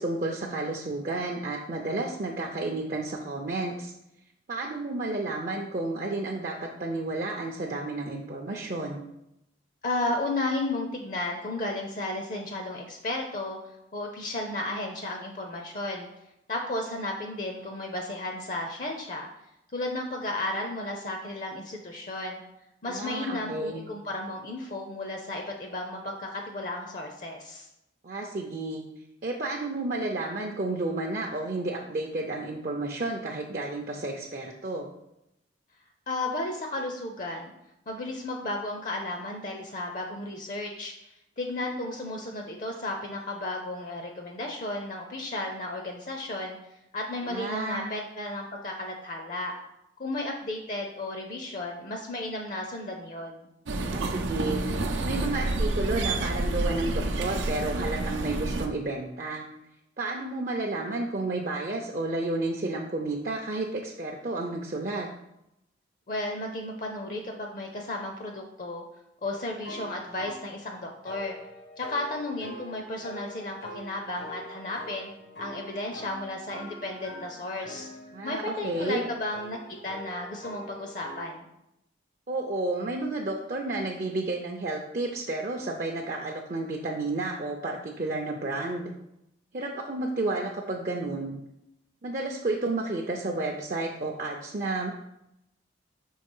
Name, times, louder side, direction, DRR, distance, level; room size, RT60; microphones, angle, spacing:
voice 1, 0.0-3.9 4.5-9.0 22.9-23.8 28.0-28.8 29.2-34.9 47.3-47.9 53.9-54.6 55.0-59.4 60.0-65.1 78.1-79.0 82.3-88.9 89.5-91.4 92.0-94.9, right 2 dB, 45° right, 0 dB, 0.5 m, -31 dB
voice 2, 9.8-13.6 13.9-16.1 16.5-19.3 19.7-22.4 22.8-27.7 36.1-37.5 37.9-40.9 41.4-46.6 46.9-49.5 50.0-53.5 66.1-68.8 69.2-71.4 71.8-75.1 75.4-77.9 78.2-79.6 79.8-81.5, left 2 dB, 45° left, 3 dB, 0.6 m, -33 dB
sound 1, 53.7-58.7, right 2 dB, 85° right, 0.6 m, -29 dB
sound 2, 69.3-70.5 71.1-81.2, equal, 75° left, 1.3 m, -44 dB
5.4 x 3.2 x 5.4 m, 0.84 s
head